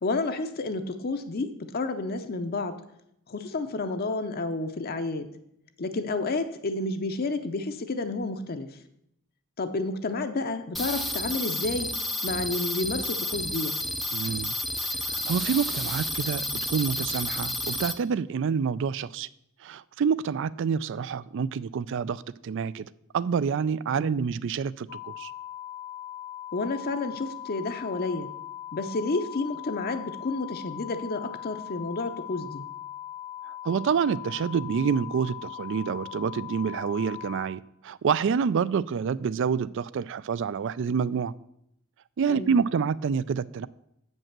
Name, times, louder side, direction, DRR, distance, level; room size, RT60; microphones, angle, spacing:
voice 1, 0.0-2.8 3.3-5.3 5.8-8.8 9.6-11.9 12.2-13.8 24.0-24.3 26.5-28.3 28.7-32.6 42.3-42.6, left 3 dB, 45° left, 7 dB, 0.6 m, -30 dB
sound 1, 10.7-17.9, left 1 dB, ahead, 0.5 m, -31 dB
voice 2, 14.1-14.5 14.9-19.3 19.6-22.9 23.1-25.3 33.4-41.3 42.2-43.7, right 6 dB, 60° right, 19 dB, 0.3 m, -27 dB
sound 2, 24.9-37.5, left 12 dB, 65° left, 1.0 m, -40 dB
7.6 x 5.4 x 7.3 m, 0.75 s
head